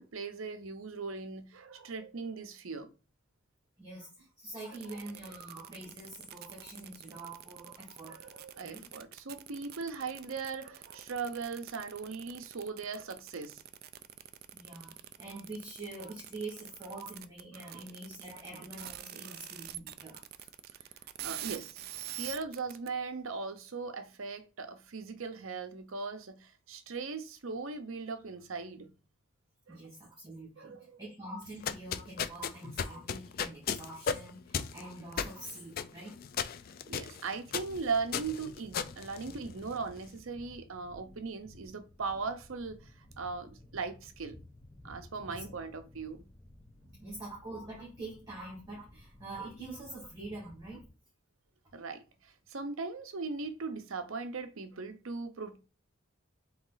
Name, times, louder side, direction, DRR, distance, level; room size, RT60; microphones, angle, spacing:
voice 1, 0.0-2.9 4.7-5.0 8.0-13.6 17.5-17.7 19.2-19.4 21.2-21.7 22.1-28.9 29.7-29.8 30.6-31.0 36.9-42.9 43.2-44.4 44.8-46.2 46.9-47.0 51.7-55.6, right 4 dB, 75° right, 0.7 m, -39 dB
voice 2, 3.8-8.2 8.6-8.9 14.5-20.5 29.7-36.2 45.3-45.6 47.0-50.8, right 2 dB, 20° right, 1.7 m, -45 dB
sound 1, 4.7-22.9, right 12 dB, 45° right, 0.3 m, -45 dB
sound 2, 31.5-39.9, left 7 dB, 45° left, 0.3 m, -36 dB
sound 3, 37.5-50.9, left 1 dB, 5° left, 0.9 m, -55 dB
4.0 x 3.1 x 3.9 m
head